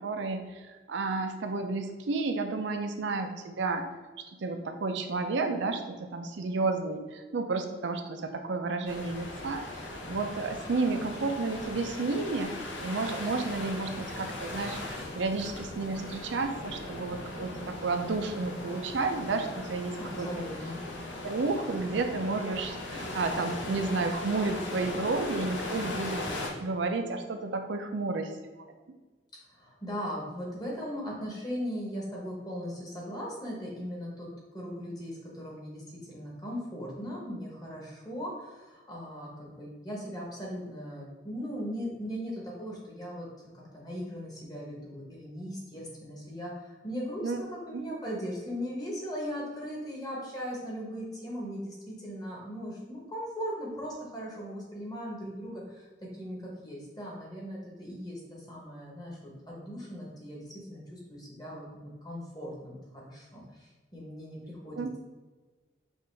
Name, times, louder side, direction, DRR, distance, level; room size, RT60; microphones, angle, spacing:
voice 1, 0.0-3.9 4.4-12.6 12.8-20.3 21.2-28.3 47.2-47.4 47.7-47.8 64.8-64.9, right 3 dB, 80° right, 6 dB, 0.5 m, -31 dB
sound 1, 8.9-26.5, left 2 dB, 85° left, 0.8 m, -39 dB
voice 2, 20.0-20.8 29.5-43.3 43.5-55.9 56.2-65.0, equal, 20° left, -3 dB, 1.1 m, -38 dB
5.5 x 2.5 x 3.3 m, 1.3 s
head